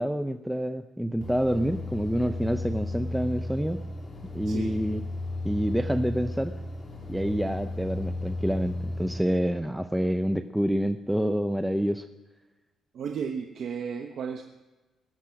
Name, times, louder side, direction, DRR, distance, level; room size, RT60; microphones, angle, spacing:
voice 1, 0.0-3.8 4.3-5.0 5.4-6.5 7.1-12.1, equal, 5° right, 8 dB, 0.6 m, -27 dB
sound 1, 1.2-9.2, left 2 dB, 30° left, 3.6 m, -34 dB
voice 2, 4.5-4.8 12.9-14.4, right 6 dB, 65° right, 5 dB, 1.0 m, -34 dB
21.5 x 7.6 x 5.9 m, 1.2 s
cardioid pair, 90°, 0 cm